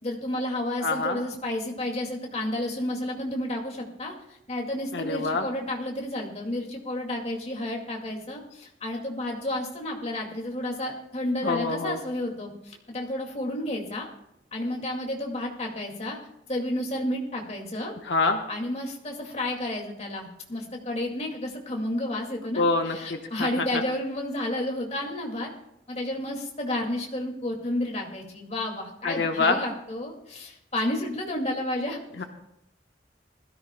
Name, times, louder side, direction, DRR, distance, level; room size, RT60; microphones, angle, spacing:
voice 1, 0.0-14.1 14.5-16.2 16.5-17.9 18.5-25.5 25.9-32.0, left 1 dB, 40° left, 1 dB, 2.1 m, -31 dB
voice 2, 0.8-1.2 4.9-5.5 11.4-12.0 18.0-18.4 22.6-23.7 29.0-29.6 32.2-32.3, left 3 dB, 90° left, 4 dB, 1.0 m, -26 dB
21.0 x 13.5 x 2.2 m, 0.83 s
head